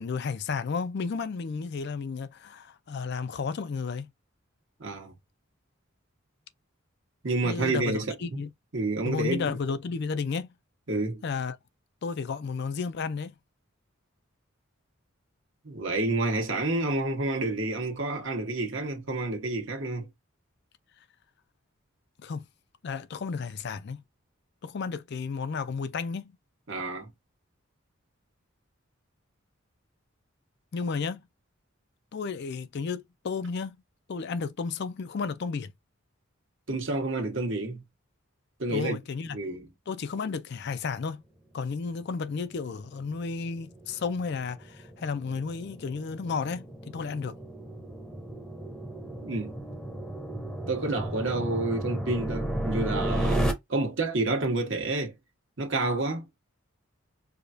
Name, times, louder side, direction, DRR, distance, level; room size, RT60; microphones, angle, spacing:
voice 1, 0.0-4.1 7.4-8.5 9.0-10.5 11.2-11.6 12.0-13.3 22.2-22.5 22.8-24.0 24.6-26.4 30.7-31.2 32.1-33.8 34.1-35.7 38.7-39.4 39.9-41.2 41.5-47.4, left 5 dB, 55° left, 0.4 m, -32 dB
voice 2, 4.8-5.1 7.2-8.4 8.7-9.5 10.9-11.2 15.6-20.1 26.7-27.1 36.7-37.8 38.6-39.0 39.3-39.7 49.2-49.5 50.7-55.1 55.6-56.3, right 2 dB, 60° right, 1.3 m, -29 dB
sound 1, 42.4-53.5, right 1 dB, 5° left, 0.8 m, -34 dB
4.9 x 2.3 x 2.6 m
head